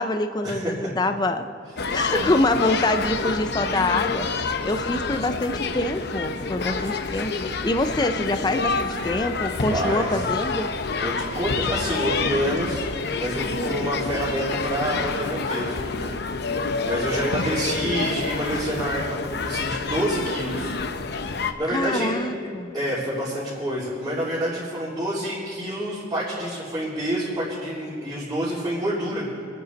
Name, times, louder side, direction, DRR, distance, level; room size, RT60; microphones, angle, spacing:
voice 1, 0.0-1.5 1.9-10.7 21.7-22.7, left 2 dB, 20° left, 8 dB, 0.5 m, -25 dB
sound 1, 1.8-21.5, left 4 dB, 60° left, 0.8 m, -28 dB
voice 2, 9.7-10.2 11.0-12.9 13.1-16.4 16.8-20.8 21.3-22.1 22.7-29.2, right 1 dB, 20° right, -12 dB, 3.3 m, -28 dB
26.5 x 9.4 x 4.1 m, 2.4 s
head